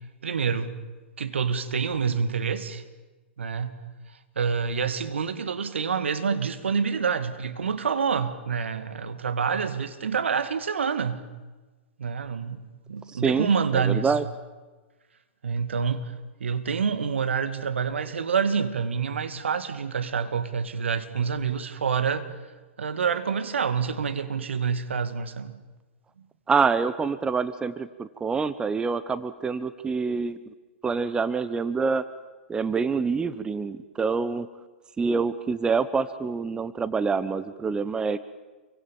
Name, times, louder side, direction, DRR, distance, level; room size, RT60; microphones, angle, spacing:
voice 1, 0.2-0.7 1.2-2.8 3.4-3.7 4.4-11.2 12.0-12.6 12.9-14.1 15.4-16.1 16.4-22.3 22.8-25.5, right 6 dB, 70° right, 2.2 m, -27 dB
voice 2, 13.1-14.2 26.5-30.4 30.8-32.0 32.5-34.5 35.0-38.2, right 5 dB, 10° right, 1.0 m, -26 dB
28.5 x 24.0 x 7.3 m
figure-of-eight pair, 110°, 7 cm